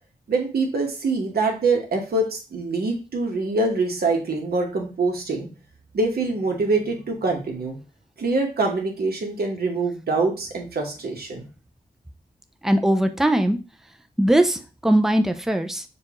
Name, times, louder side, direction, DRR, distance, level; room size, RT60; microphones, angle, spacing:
voice 1, 0.3-2.3 2.5-5.5 5.9-7.8 8.2-11.5, right 3 dB, 75° right, 1 dB, 1.1 m, -24 dB
voice 2, 12.6-13.6 14.2-15.8, right 1 dB, 5° right, 6 dB, 0.4 m, -20 dB
6.6 x 2.3 x 2.9 m, 0.33 s
wide cardioid pair, 155°, 16 cm